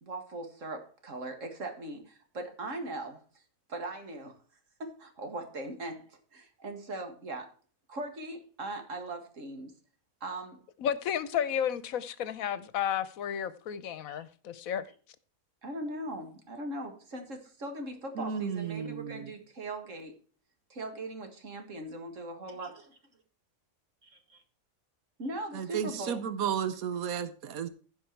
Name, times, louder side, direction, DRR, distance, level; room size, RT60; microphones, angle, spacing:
voice 1, 0.0-3.4 3.7-4.4 4.8-7.5 7.9-9.7 10.2-10.6 14.1-14.2 15.6-20.1 20.7-23.0 24.0-24.4 25.2-26.2, right 2 dB, 65° right, 2.1 m, -40 dB
voice 2, 10.8-14.8, left 9 dB, 75° left, 1.2 m, -32 dB
voice 3, 18.1-19.3 25.5-27.7, right 8 dB, 85° right, 1.3 m, -33 dB
15.5 x 5.4 x 4.5 m
omnidirectional pair, 1.5 m